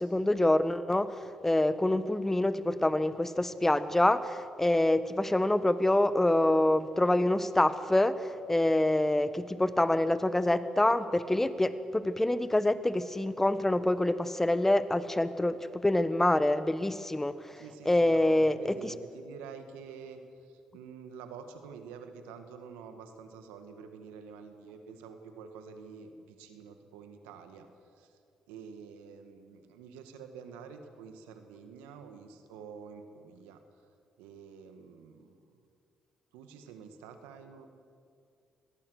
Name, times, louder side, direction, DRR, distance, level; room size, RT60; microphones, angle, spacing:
voice 1, 0.0-18.9, left 1 dB, 15° left, 13 dB, 1.2 m, -26 dB
voice 2, 17.6-27.7 28.0-28.2 28.5-33.6 34.2-35.4 36.3-37.7, right 6 dB, 90° right, 7 dB, 1.7 m, -48 dB
25.0 x 18.0 x 6.5 m, 2.4 s
hypercardioid pair, 50°, 2 cm